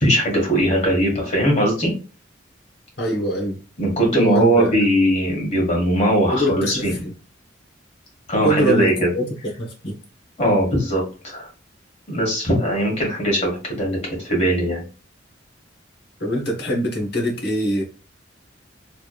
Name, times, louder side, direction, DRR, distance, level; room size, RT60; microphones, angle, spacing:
voice 1, 0.0-1.9 3.8-6.9 8.3-9.1 10.4-11.5 12.1-14.8, equal, 35° left, -1 dB, 1.6 m, -20 dB
voice 2, 3.0-3.6 4.0-4.7 6.3-7.1 8.4-9.3 9.6-9.9 16.2-17.8, right 1 dB, 60° left, 1 dB, 1.1 m, -23 dB
3.3 x 3.1 x 2.4 m, 0.35 s
head